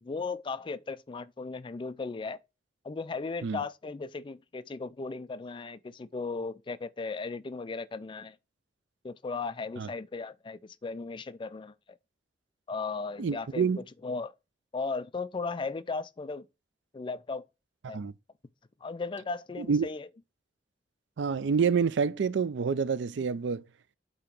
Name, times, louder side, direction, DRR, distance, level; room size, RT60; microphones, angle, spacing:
voice 1, 0.0-2.4 2.8-8.4 9.0-12.0 12.7-13.7 14.0-14.3 14.7-16.5 16.9-17.4 17.9-18.0 18.8-20.1, left 4 dB, 25° left, 0.3 m, -36 dB
voice 2, 13.2-13.8 17.8-18.1 19.6-19.9 21.2-23.6, right 6 dB, 75° right, 0.4 m, -27 dB
8.5 x 2.9 x 5.9 m
head